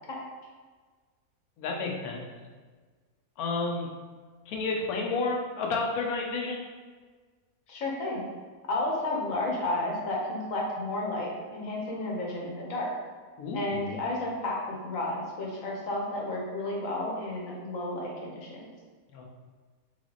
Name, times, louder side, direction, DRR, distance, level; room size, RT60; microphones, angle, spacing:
voice 1, 1.6-2.3 3.4-3.9 4.5-6.7 13.4-13.8 19.1-19.2, left 3 dB, 85° left, 1 dB, 1.2 m, -31 dB
voice 2, 7.7-8.2 8.7-12.9 13.5-18.7, left 2 dB, 65° left, -2 dB, 1.3 m, -32 dB
3.7 x 3.3 x 3.9 m, 1.5 s
omnidirectional pair, 1.5 m